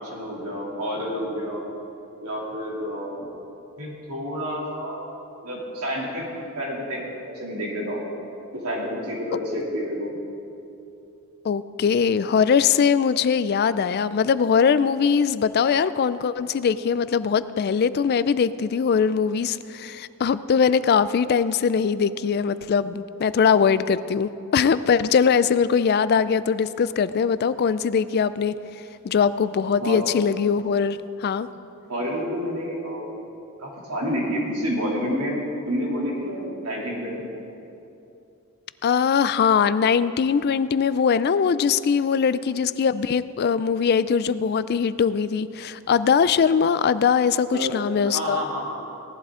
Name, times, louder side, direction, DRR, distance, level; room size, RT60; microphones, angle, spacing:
voice 1, 0.0-1.6 2.2-3.2 3.8-5.0 5.4-6.2 6.5-8.0 8.5-10.2 29.8-30.0 31.9-33.2 33.6-35.4 35.6-37.3 47.5-47.8 48.0-48.8, equal, 85° right, -3 dB, 2.9 m, -29 dB
voice 2, 11.4-28.5 29.0-31.5 38.8-48.4, left 6 dB, 45° left, 15 dB, 0.3 m, -21 dB
17.5 x 11.5 x 3.7 m, 2.8 s
head